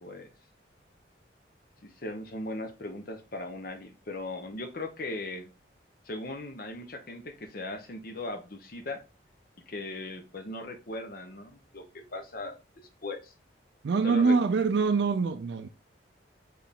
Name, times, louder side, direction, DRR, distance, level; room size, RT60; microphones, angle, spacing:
voice 1, 1.8-5.5 6.0-9.0 9.7-13.3 14.0-14.4, left 2 dB, 50° left, 0.7 m, -38 dB
voice 2, 13.8-15.7, right 4 dB, 65° right, 0.4 m, -24 dB
4.5 x 3.3 x 3.4 m
head